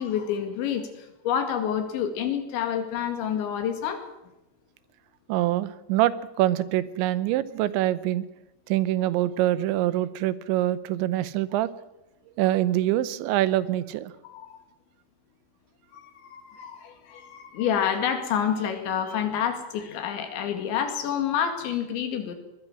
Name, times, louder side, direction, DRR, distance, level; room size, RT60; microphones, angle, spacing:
voice 1, 0.0-4.0 14.2-14.7 15.9-22.4, left 8 dB, 90° left, 6 dB, 4.6 m, -28 dB
voice 2, 5.3-8.2 8.7-11.7 12.4-14.1, right 14 dB, 85° right, 16 dB, 3.2 m, -25 dB
22.0 x 20.0 x 6.2 m, 0.96 s
omnidirectional pair, 5.1 m